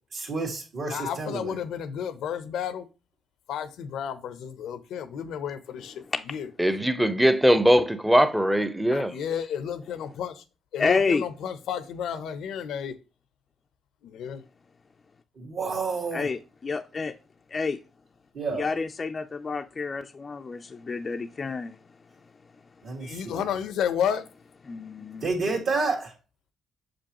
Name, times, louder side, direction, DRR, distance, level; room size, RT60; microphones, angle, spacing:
voice 1, 0.1-1.5 15.4-16.2 18.3-18.6 22.8-23.4 25.2-26.1, right 3 dB, 65° right, 1.7 m, -29 dB
voice 2, 0.9-2.8 3.5-6.5 8.9-10.4 10.7-12.9 14.0-14.4 23.0-24.2, left 8 dB, 80° left, 0.7 m, -32 dB
voice 3, 6.6-9.1, equal, 5° right, 0.6 m, -21 dB
voice 4, 10.8-11.2 16.1-17.1 17.5-17.8 18.5-21.8 24.7-25.3, left 4 dB, 35° left, 0.4 m, -29 dB
6.2 x 5.2 x 2.9 m
cardioid pair, 90°, 0 cm